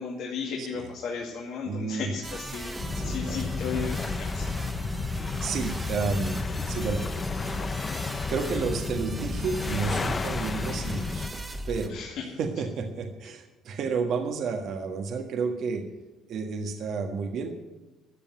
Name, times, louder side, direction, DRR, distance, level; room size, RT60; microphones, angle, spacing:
voice 1, 0.0-2.7 3.0-4.4 11.9-12.2, left 6 dB, 70° left, -3 dB, 2.2 m, -34 dB
voice 2, 1.6-2.1 2.9-3.5 5.4-6.4 6.7-7.1 7.4-7.5 8.3-11.3 11.7-12.0 12.4-15.9 16.3-17.6, right 5 dB, 65° right, 4 dB, 1.4 m, -31 dB
sound 1, 2.2-11.9, right 1 dB, 20° right, 1.6 m, -38 dB
sound 2, 2.8-11.3, left 4 dB, 30° left, 0.8 m, -32 dB
13.5 x 7.1 x 9.2 m, 1.1 s
cardioid pair, 90°, 0 cm